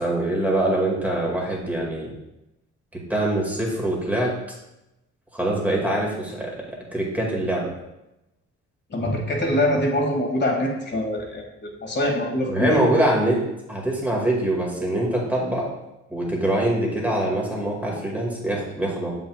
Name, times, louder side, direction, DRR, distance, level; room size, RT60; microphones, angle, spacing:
voice 1, 0.0-2.1 2.9-4.3 5.3-7.7 12.5-13.4 13.7-15.7 16.1-19.1, right 1 dB, 5° right, -3 dB, 2.0 m, -24 dB
voice 2, 8.9-12.8, left 1 dB, 35° left, 1 dB, 1.7 m, -24 dB
7.3 x 5.6 x 2.3 m, 0.93 s
cardioid pair, 90°, 30 cm